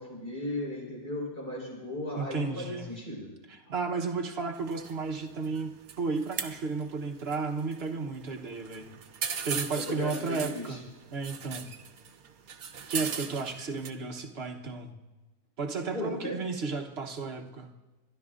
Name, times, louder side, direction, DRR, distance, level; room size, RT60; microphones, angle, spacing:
voice 1, 0.0-3.3 9.9-10.8 15.9-16.4, left 1 dB, 35° left, -2 dB, 4.3 m, -36 dB
voice 2, 2.2-2.9 3.5-8.9 9.4-10.8 11.1-11.7 12.9-14.9 15.6-17.7, right 4 dB, 50° right, 3 dB, 1.2 m, -33 dB
sound 1, 4.5-13.9, right 7 dB, 75° right, 1.3 m, -40 dB
28.5 x 12.5 x 2.5 m, 1.2 s
omnidirectional pair, 1.5 m